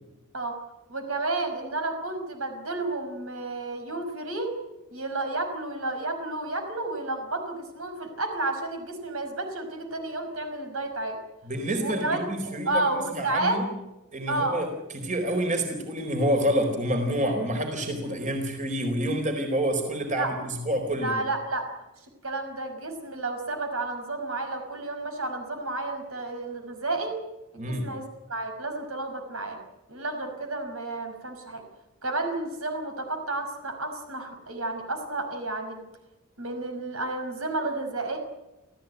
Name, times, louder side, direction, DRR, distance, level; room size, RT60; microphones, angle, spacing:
voice 1, 0.9-4.5 4.9-11.2 11.8-13.6 14.3-14.6 20.2-20.3 21.0-21.6 22.2-27.2 27.5-29.6 29.9-31.6 32.0-35.8 36.4-38.2, right 2 dB, 75° right, 5 dB, 5.4 m, -31 dB
voice 2, 11.4-12.8 13.1-13.6 14.1-14.7 14.9-21.2 27.6-27.9, equal, 35° right, 4 dB, 4.2 m, -28 dB
27.5 x 15.5 x 9.3 m, 0.99 s
head